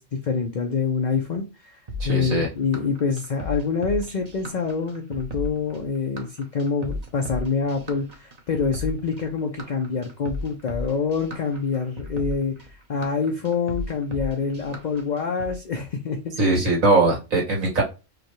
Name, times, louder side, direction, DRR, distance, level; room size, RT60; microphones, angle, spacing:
voice 1, 0.0-1.8 2.0-16.4, left 5 dB, 50° left, 0.5 m, -26 dB
sound 1, 1.9-15.5, left 2 dB, 35° right, 0.8 m, -35 dB
voice 2, 2.0-2.5 16.4-17.8, right 2 dB, 85° right, 2.1 m, -20 dB
5.0 x 2.3 x 3.0 m
omnidirectional pair, 1.4 m